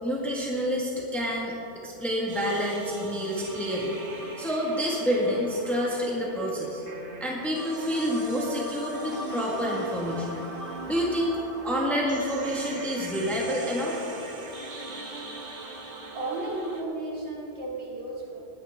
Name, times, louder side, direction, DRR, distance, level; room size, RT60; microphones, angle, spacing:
voice 1, 0.0-1.5 1.8-3.9 4.4-6.8 7.2-10.4 10.7-11.3 11.6-14.0, equal, ahead, -4 dB, 1.6 m, -28 dB
sound 1, 2.3-16.8, right 2 dB, 50° right, 1.4 m, -40 dB
voice 2, 16.1-18.5, right 2 dB, 70° right, -4 dB, 2.8 m, -34 dB
19.5 x 10.0 x 3.6 m, 2.9 s
omnidirectional pair, 1.2 m